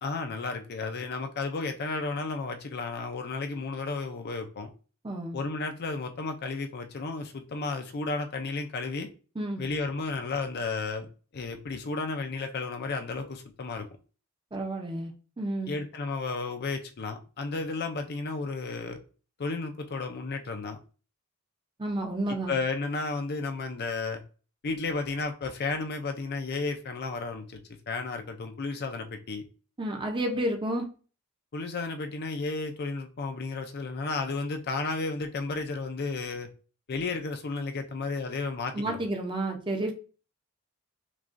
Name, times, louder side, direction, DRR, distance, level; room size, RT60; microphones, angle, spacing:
voice 1, 0.0-4.7 5.3-9.1 9.6-11.1 11.3-13.9 15.7-19.0 19.4-20.8 22.3-24.2 24.6-27.6 27.9-29.4 31.5-36.5 36.9-39.0, left 3 dB, 50° left, 0.5 m, -33 dB
voice 2, 5.0-5.4 9.4-9.6 14.5-15.1 15.4-15.8 21.8-22.5 29.8-30.9 38.7-39.9, right 1 dB, 25° right, 0.7 m, -31 dB
6.1 x 2.3 x 2.6 m
head